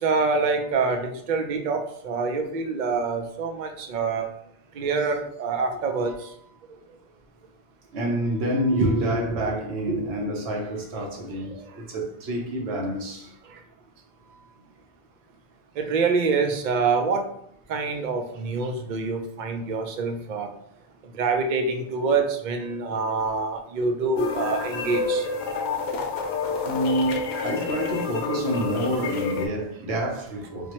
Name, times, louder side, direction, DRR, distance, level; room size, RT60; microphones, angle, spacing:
voice 1, 0.0-4.3 4.8-6.1 8.7-9.5 9.9-10.0 11.5-11.6 15.8-17.2 17.7-20.5 21.2-25.2, right 4 dB, 55° right, 0.6 m, -26 dB
voice 2, 7.9-13.3 26.6-30.7, right 1 dB, 75° right, 1.1 m, -28 dB
sound 1, 24.2-29.5, left 4 dB, 80° left, 0.9 m, -29 dB
4.4 x 2.1 x 2.9 m
omnidirectional pair, 1.1 m